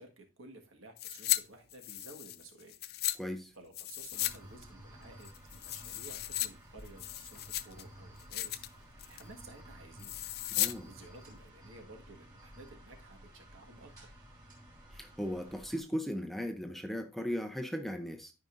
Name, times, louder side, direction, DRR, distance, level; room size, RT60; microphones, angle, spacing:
voice 1, 0.0-2.8 3.5-10.1 10.9-13.9, right 2 dB, 65° right, 3 dB, 1.7 m, -54 dB
sound 1, 1.0-1.4 1.7-3.2 3.7-4.4 4.6-4.7 5.2-6.5 6.8-7.8 8.2-8.7 9.0-9.3 10.0-10.7 11.0-11.1, left 15 dB, 45° left, 0.4 m, -35 dB
voice 2, 3.2-3.5 10.5-10.9 14.9-18.3, equal, ahead, 6 dB, 0.6 m, -37 dB
sound 2, 4.1-15.8, right 1 dB, 20° right, 3.0 m, -54 dB
13.0 x 5.1 x 2.6 m, 0.29 s
head